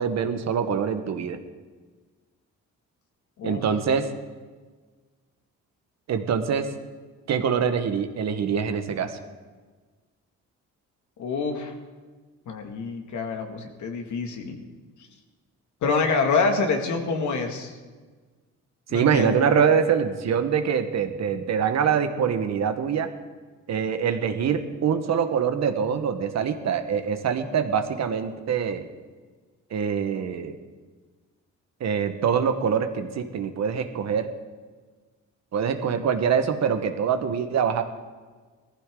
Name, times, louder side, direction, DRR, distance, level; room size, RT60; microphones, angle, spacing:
voice 1, 0.0-1.4 3.4-4.1 6.1-6.7 7.3-9.2 18.9-23.1 23.7-28.9 29.7-30.6 31.8-34.3 35.5-37.8, right 7 dB, 60° right, 8 dB, 1.3 m, -24 dB
voice 2, 11.2-11.7 12.5-14.6 15.8-17.7 18.9-19.4, left 4 dB, 70° left, 3 dB, 2.2 m, -26 dB
18.5 x 14.5 x 3.8 m, 1.4 s
cardioid pair, 90°, 30 cm